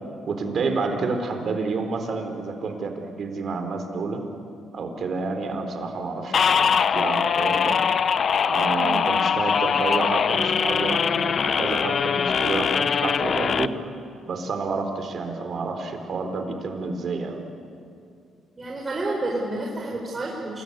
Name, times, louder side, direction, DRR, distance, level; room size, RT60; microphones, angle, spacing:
voice 1, 0.2-4.2 4.7-7.8 8.4-13.9 14.3-17.5, right 4 dB, 55° right, 5 dB, 3.9 m, -29 dB
sound 1, 6.3-13.7, left 7 dB, 50° left, 0.8 m, -22 dB
voice 2, 18.6-20.6, right 2 dB, 30° right, -2 dB, 4.2 m, -30 dB
27.5 x 20.0 x 9.7 m, 2.5 s
cardioid pair, 90°, 0 cm